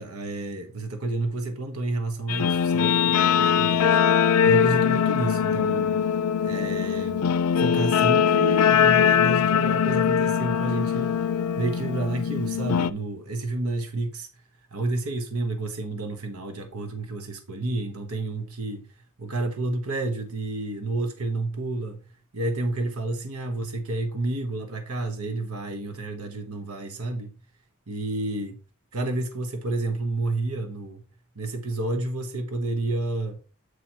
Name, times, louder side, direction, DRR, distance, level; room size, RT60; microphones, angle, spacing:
voice 1, 0.0-6.0 6.4-7.3 7.6-11.3 11.6-14.3 14.7-18.9 19.2-22.0 22.3-27.3 27.9-28.6 28.9-31.0 31.3-33.4, right 2 dB, 85° right, 1.1 m, -30 dB
Guitar, 2.3-12.9, left 7 dB, 80° left, 0.4 m, -22 dB
8.0 x 4.4 x 4.4 m
head